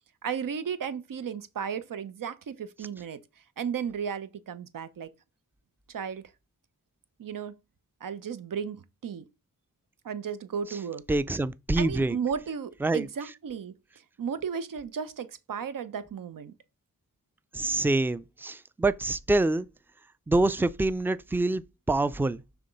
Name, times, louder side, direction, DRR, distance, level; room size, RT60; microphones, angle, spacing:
voice 1, 0.2-3.2 3.6-5.1 5.9-6.2 7.2-7.5 8.0-9.3 10.0-11.0 11.8-13.7 14.2-16.5, right 7 dB, 75° right, 0.8 m, -34 dB
voice 2, 11.1-12.2 12.8-13.1 17.5-19.7 20.3-21.6 21.9-22.4, right 2 dB, 5° right, 0.3 m, -26 dB
5.8 x 3.5 x 5.2 m
wide cardioid pair, 80°, 33 cm